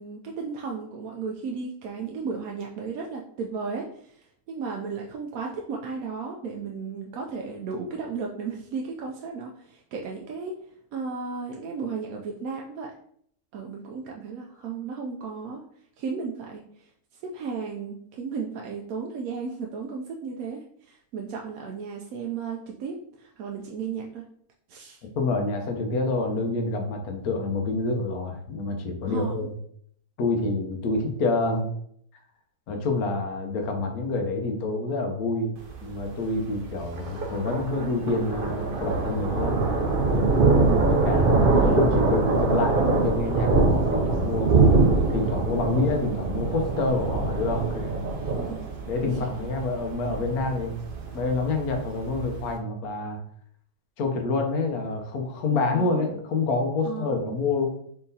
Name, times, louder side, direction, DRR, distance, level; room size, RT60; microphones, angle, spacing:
voice 1, 0.0-12.9 13.5-15.6 16.0-24.3 24.7-25.0 29.0-29.5 40.4-41.0 41.3-42.1 48.3-48.7 49.0-49.3 55.5-56.1 56.8-57.4, right 5 dB, 75° right, 0 dB, 1.0 m, -35 dB
voice 2, 25.2-29.6 30.2-31.6 32.7-35.5 35.8-39.7 40.8-44.5 45.1-48.1 48.9-50.7 51.1-53.2 54.0-57.7, left 3 dB, 75° left, 3 dB, 1.3 m, -27 dB
Thunder, 35.6-52.5, right 3 dB, 55° right, 0.6 m, -24 dB
4.5 x 3.7 x 2.7 m, 0.66 s
omnidirectional pair, 1.6 m